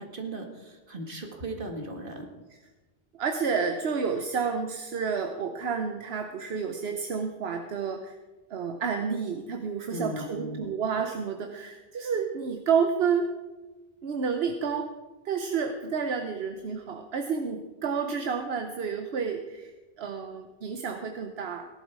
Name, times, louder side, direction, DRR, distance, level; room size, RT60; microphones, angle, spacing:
voice 1, 0.0-2.3 9.9-10.7, right 1 dB, 55° right, 3 dB, 2.1 m, -37 dB
voice 2, 3.1-8.2 8.5-13.3 14.0-14.9 15.2-21.7, right 6 dB, 75° right, 6 dB, 1.1 m, -30 dB
17.0 x 11.5 x 4.7 m, 1.2 s
omnidirectional pair, 1.1 m